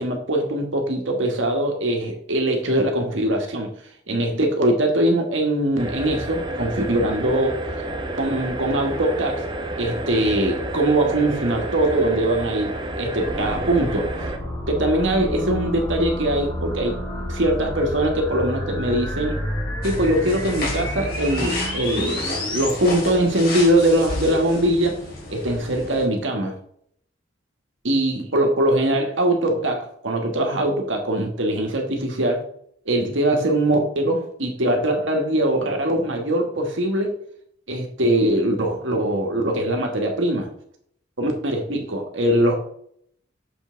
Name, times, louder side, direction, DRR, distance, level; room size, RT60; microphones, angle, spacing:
voice 1, 0.0-3.7 4.1-7.6 8.2-9.4 9.8-14.1 14.7-17.0 17.3-19.4 19.8-24.9 25.3-26.6 27.8-32.4 32.9-37.1 37.7-40.5 41.2-42.6, right 1 dB, 80° right, 2 dB, 1.7 m, -22 dB
sound 1, 5.8-14.4, right 1 dB, 25° right, 0.7 m, -30 dB
sound 2, 13.2-22.7, left 1 dB, 25° left, 2.0 m, -29 dB
sound 3, 19.8-26.0, left 2 dB, 55° left, 2.6 m, -32 dB
7.0 x 5.4 x 3.9 m, 0.66 s
head